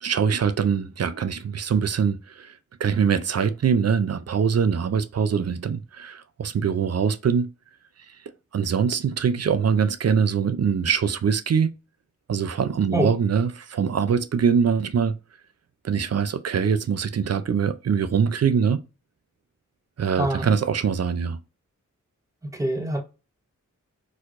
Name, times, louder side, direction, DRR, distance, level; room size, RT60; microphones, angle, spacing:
voice 1, 0.0-2.5 2.8-7.5 8.5-11.7 12.3-15.2 15.8-18.8 20.0-21.4, right 6 dB, 55° right, 0.5 m, -23 dB
voice 2, 20.2-20.5 22.5-23.0, right 1 dB, 10° right, 0.7 m, -24 dB
4.5 x 2.1 x 2.5 m
wide cardioid pair, 65°, 31 cm